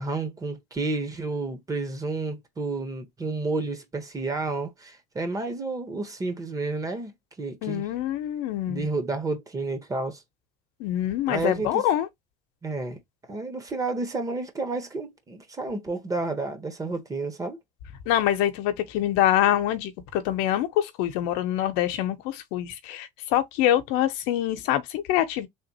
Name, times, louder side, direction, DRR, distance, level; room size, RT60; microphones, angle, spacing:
voice 1, 0.0-7.9 8.7-10.2 11.3-11.8 12.6-13.0 13.3-17.6, right 3 dB, 20° right, 1.1 m, -31 dB
voice 2, 7.6-8.9 10.8-12.1 18.1-25.5, left 12 dB, 75° left, 0.8 m, -25 dB
3.4 x 2.5 x 2.9 m
supercardioid pair, 110°, 17 cm